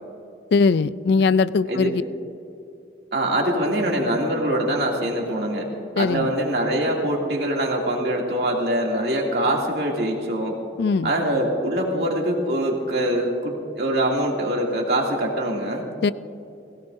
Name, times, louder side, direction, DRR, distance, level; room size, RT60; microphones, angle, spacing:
voice 1, 0.5-2.0 6.0-6.3 10.8-11.1 16.0-16.1, left 4 dB, 65° left, 16 dB, 0.4 m, -20 dB
voice 2, 3.1-5.7 6.0-10.6 11.0-15.9, right 1 dB, 65° right, -1 dB, 2.5 m, -23 dB
21.5 x 17.0 x 2.6 m, 2.7 s
head